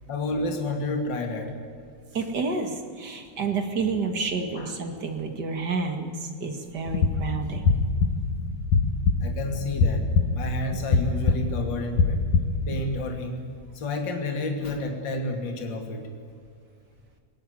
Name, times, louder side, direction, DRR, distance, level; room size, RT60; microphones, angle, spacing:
voice 1, 0.1-1.5 4.5-4.7 9.2-10.1 10.3-12.2 12.7-13.4 13.7-16.1, left 2 dB, 40° left, 3 dB, 3.1 m, -30 dB
voice 2, 2.1-7.8, right 4 dB, 35° right, 5 dB, 2.3 m, -29 dB
sound 1, 6.9-13.0, left 4 dB, 85° left, 3.1 m, -24 dB
20.0 x 18.5 x 9.6 m, 2.1 s
omnidirectional pair, 3.5 m